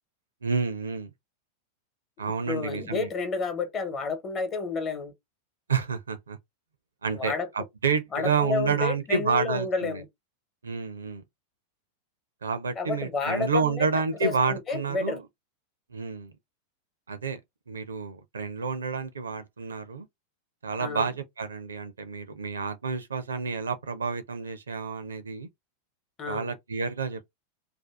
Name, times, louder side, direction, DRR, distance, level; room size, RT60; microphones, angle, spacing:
voice 1, 0.4-1.1 2.2-3.1 5.7-6.4 7.0-10.0 10.6-11.2 12.4-15.2 15.9-16.3 17.1-17.4 17.7-20.1 20.6-25.5 26.3-27.3, right 5 dB, 70° right, 0.5 m, -29 dB
voice 2, 2.2-5.1 7.1-7.5 8.1-10.0 12.8-13.9 14.2-15.2 20.8-21.1 26.2-26.5, left 4 dB, 30° left, 1.0 m, -30 dB
2.7 x 2.3 x 3.2 m
figure-of-eight pair, 90°, 0 cm